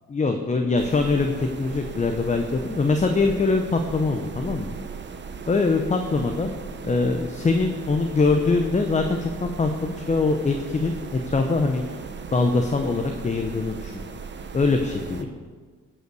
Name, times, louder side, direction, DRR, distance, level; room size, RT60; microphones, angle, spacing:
voice 1, 0.1-4.7 5.5-6.5 6.8-12.0 12.3-14.0 14.5-15.3, left 3 dB, 25° left, 5 dB, 0.8 m, -23 dB
sound 1, 0.8-15.2, right 5 dB, 40° right, 0.9 m, -37 dB
11.0 x 5.6 x 6.8 m, 1.5 s
cardioid pair, 90°, 30 cm